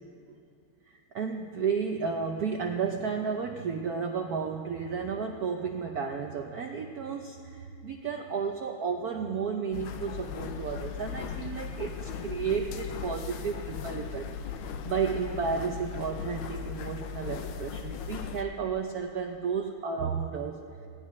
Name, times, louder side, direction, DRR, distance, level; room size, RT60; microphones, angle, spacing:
voice 1, 0.9-14.3 14.6-20.6, right 6 dB, 75° right, 3 dB, 0.8 m, -32 dB
sound 1, 9.7-18.4, left 6 dB, 75° left, 1.4 m, -37 dB
21.0 x 16.0 x 3.2 m, 2.4 s
omnidirectional pair, 2.4 m